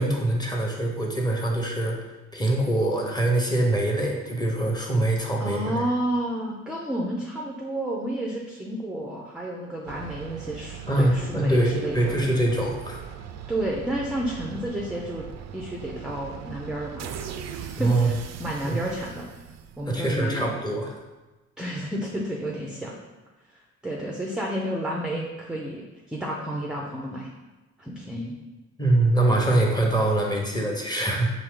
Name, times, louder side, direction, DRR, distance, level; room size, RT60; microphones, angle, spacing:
voice 1, 0.0-2.0 2.3-5.8 10.9-13.0 17.8-18.1 18.7-18.8 19.9-20.9 28.8-31.3, right 1 dB, 15° left, 0 dB, 0.9 m, -23 dB
voice 2, 5.4-12.2 13.5-15.3 15.5-17.1 17.5-19.2 19.8-20.6 21.6-22.9 23.8-27.3 27.8-28.3, right 1 dB, 5° right, -2 dB, 0.5 m, -31 dB
sound 1, 9.9-20.1, right 8 dB, 60° right, 0.4 m, -40 dB
4.7 x 2.8 x 3.7 m, 1.1 s
cardioid pair, 90°, 30 cm